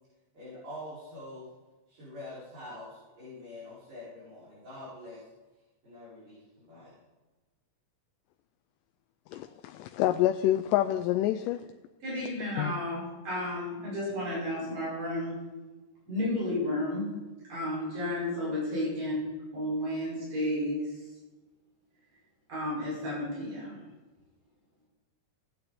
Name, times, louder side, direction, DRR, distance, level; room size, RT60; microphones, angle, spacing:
voice 1, 0.3-1.5 1.9-5.2 5.8-6.9, left 1 dB, 55° right, -11 dB, 6.3 m, -45 dB
voice 2, 9.4-11.6 12.6-12.7, left 13 dB, 90° left, 8 dB, 2.2 m, -27 dB
voice 3, 12.0-15.4 16.1-17.1 17.5-20.9 22.5-23.8, left 1 dB, 85° right, -6 dB, 7.0 m, -32 dB
19.0 x 8.7 x 4.2 m, 1.2 s
omnidirectional pair, 3.7 m